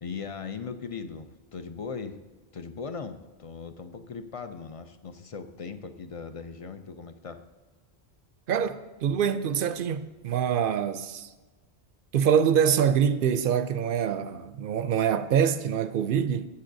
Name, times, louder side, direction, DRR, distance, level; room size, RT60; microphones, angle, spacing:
voice 1, 0.0-2.2 2.5-7.4, left 5 dB, 45° left, 0.5 m, -39 dB
voice 2, 8.5-11.3 12.1-16.5, right 8 dB, 65° right, 0.7 m, -25 dB
15.0 x 8.5 x 2.7 m
omnidirectional pair, 1.1 m